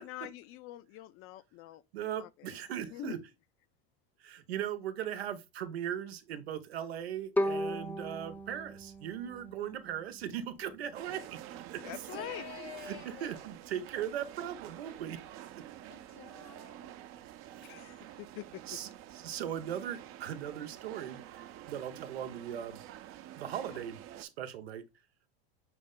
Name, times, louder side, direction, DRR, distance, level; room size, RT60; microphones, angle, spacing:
voice 1, 0.0-1.8 2.2-2.6 2.9-3.1 11.8-12.5 17.6-18.6, left 15 dB, 45° left, 0.5 m, -45 dB
voice 2, 1.9-3.2 4.2-11.8 12.8-15.2 15.5-15.6 17.5-17.7 18.7-21.2 21.7-22.8 23.4-24.8, right 10 dB, 90° right, 0.7 m, -39 dB
Bowed string instrument, 7.4-10.4, equal, 5° left, 0.6 m, -36 dB
sound 1, 10.9-24.2, right 12 dB, 45° right, 0.6 m, -48 dB
voice 3, 12.1-13.5 15.9-16.9, left 7 dB, 85° left, 2.7 m, -48 dB
6.0 x 2.1 x 3.6 m
hypercardioid pair, 105°, 30 cm